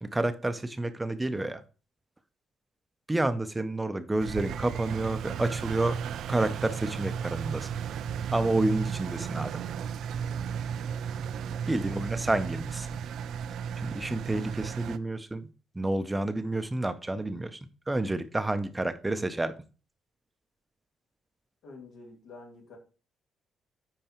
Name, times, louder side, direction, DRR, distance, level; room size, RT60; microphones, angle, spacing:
voice 1, 0.0-1.6 3.1-6.0 6.3-7.7 8.3-9.6 11.7-12.9 13.8-15.5 15.7-17.6 17.9-19.5, right 2 dB, 15° right, 10 dB, 0.6 m, -29 dB
Engine, 4.2-15.0, right 7 dB, 75° right, 0.3 m, -34 dB
voice 2, 21.6-22.8, left 3 dB, 80° left, -1 dB, 2.6 m, -48 dB
8.7 x 4.6 x 2.9 m, 0.35 s
cardioid pair, 90°, 0 cm